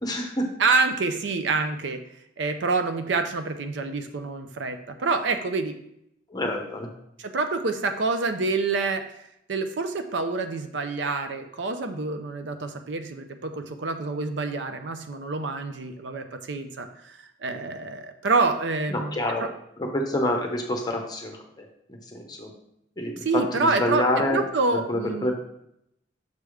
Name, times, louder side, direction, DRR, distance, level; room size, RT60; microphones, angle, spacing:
voice 1, 0.0-0.5 6.3-6.9 18.9-19.4 19.8-22.5 23.0-24.4 24.7-25.3, left 1 dB, 20° left, 2 dB, 0.7 m, -27 dB
voice 2, 0.6-2.0 2.4-5.7 7.2-9.0 9.5-19.5 23.2-24.0 24.3-25.3, right 3 dB, 75° right, 7 dB, 0.5 m, -27 dB
6.6 x 3.4 x 4.8 m, 0.77 s
head